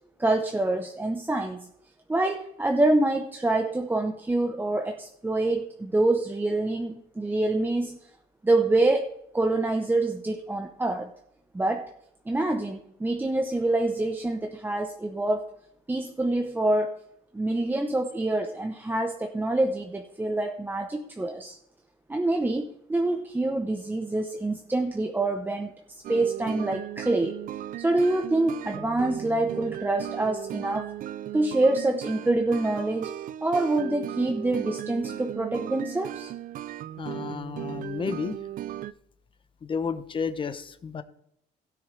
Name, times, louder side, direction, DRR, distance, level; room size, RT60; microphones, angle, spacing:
voice 1, 0.2-1.7 2.1-8.0 8.4-11.1 11.5-11.9 12.3-15.5 15.9-17.0 17.3-21.6 22.1-27.3 27.8-30.9 31.3-33.1 33.4-36.3, right 2 dB, 10° right, 4 dB, 0.8 m, -26 dB
sound 1, 26.0-38.9, right 12 dB, 55° right, 0.4 m, -37 dB
voice 2, 37.0-38.4 39.6-41.0, left 6 dB, 30° left, 12 dB, 0.8 m, -32 dB
16.0 x 6.8 x 3.3 m, 0.75 s
cardioid pair, 110°, 17 cm